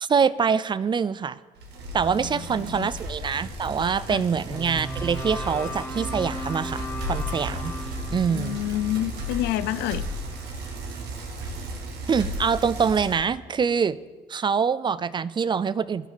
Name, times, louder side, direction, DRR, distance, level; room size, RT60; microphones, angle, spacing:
voice 1, 0.0-1.4 1.9-7.7 8.1-8.6 12.1-14.0 14.3-16.1, right 6 dB, 30° right, 18 dB, 0.4 m, -25 dB
Bicycle, 1.6-13.3, right 1 dB, 80° right, 2.2 m, -34 dB
voice 2, 2.2-2.9 4.1-4.2 8.3-10.0, left 14 dB, 85° left, 16 dB, 0.5 m, -29 dB
sound 1, 4.5-10.7, equal, 15° left, 2.0 m, -37 dB
15.5 x 11.5 x 4.1 m, 1.3 s
cardioid pair, 110°, 17 cm